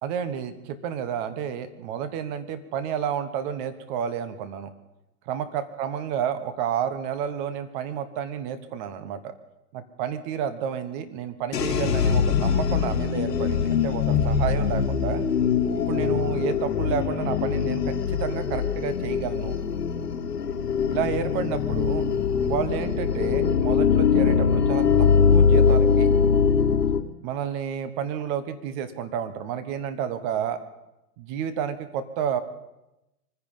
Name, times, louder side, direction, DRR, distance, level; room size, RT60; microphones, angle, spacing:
voice 1, 0.0-4.7 5.3-9.3 9.7-15.2 15.7-19.5 20.9-24.8 25.3-26.1 27.2-30.6 31.2-32.4, right 8 dB, 30° right, 11 dB, 1.3 m, -30 dB
sound 1, 11.5-27.0, left 6 dB, 90° left, 1.5 m, -22 dB
24.0 x 10.5 x 5.5 m, 0.92 s
hypercardioid pair, 140°, 46 cm